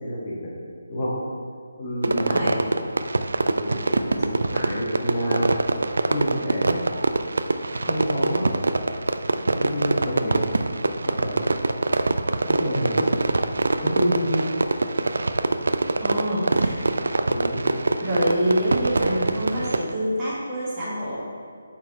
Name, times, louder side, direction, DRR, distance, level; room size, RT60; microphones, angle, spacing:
voice 1, 0.0-0.5 0.9-1.1 1.8-2.7 3.5-5.5 6.1-6.8 7.8-8.5 9.4-10.4 11.1-11.5 12.5-13.4 13.8-14.5 17.3-17.8, equal, 25° left, -8 dB, 1.8 m, -28 dB
Fireworks, 2.0-19.9, right 2 dB, 70° right, 0.4 m, -24 dB
voice 2, 2.1-2.6 16.0-16.9 18.0-21.2, right 1 dB, 20° right, -9 dB, 1.8 m, -26 dB
8.3 x 4.4 x 4.2 m, 2.3 s
figure-of-eight pair, 150°, 0 cm